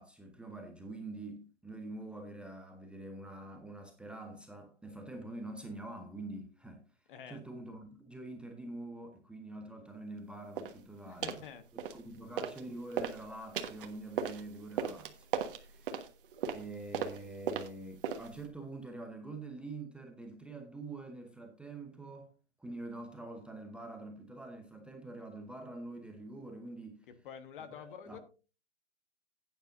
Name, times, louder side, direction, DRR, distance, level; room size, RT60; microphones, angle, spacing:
voice 1, 0.0-6.8 7.3-11.4 11.9-15.3 15.5-16.0 16.5-22.3 22.6-27.0 27.7-28.2, right 2 dB, 5° right, 0.8 m, -45 dB
voice 2, 7.1-7.4 11.0-11.6 25.2-25.3 27.1-28.2, left 8 dB, 45° left, 1.3 m, -48 dB
sound 1, 10.6-10.8 11.2-11.5 11.8-12.6 12.9-18.5, right 7 dB, 50° right, 1.4 m, -37 dB
14.5 x 9.2 x 2.6 m
hypercardioid pair, 140°, 35 cm